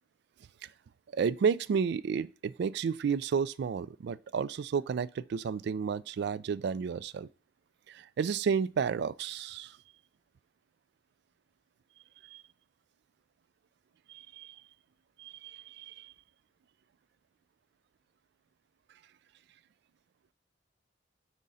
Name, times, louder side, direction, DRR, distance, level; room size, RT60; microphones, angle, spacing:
voice 1, 1.1-7.3 7.9-9.8 12.3-12.4 14.1-14.6 15.2-16.1, right 6 dB, 60° right, 0.3 m, -32 dB
9.5 x 3.7 x 4.0 m
head